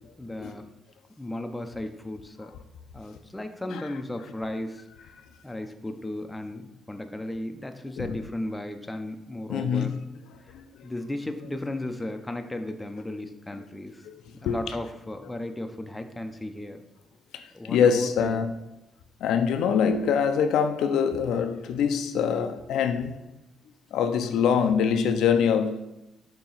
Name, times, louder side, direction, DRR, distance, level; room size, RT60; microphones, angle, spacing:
voice 1, 0.2-0.7 1.2-2.5 2.9-5.1 5.4-9.9 10.4-10.5 10.8-14.1 14.4-16.8 17.5-18.4, left 1 dB, 10° left, 0.6 m, -35 dB
voice 2, 9.5-10.0 10.5-10.9 14.0-14.6 17.3-18.5 19.2-23.2 23.9-25.8, left 7 dB, 80° left, 0.5 m, -24 dB
7.0 x 2.9 x 5.5 m
cardioid pair, 90°, 0 cm